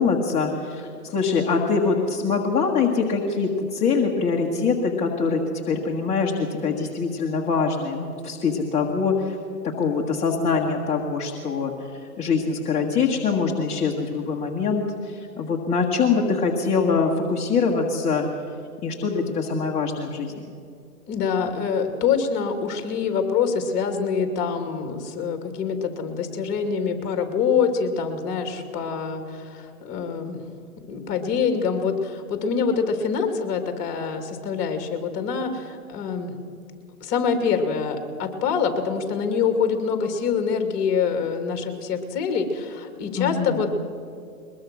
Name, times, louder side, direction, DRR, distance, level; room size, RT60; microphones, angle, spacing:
voice 1, 0.0-9.4 9.6-18.3 18.8-20.3 43.1-43.6, left 5 dB, 15° left, -2 dB, 1.5 m, -24 dB
voice 2, 21.1-30.4 30.9-36.3 37.0-43.7, left 6 dB, 30° left, 6 dB, 2.7 m, -25 dB
22.0 x 21.5 x 6.2 m, 2.4 s
hypercardioid pair, 140°, 46 cm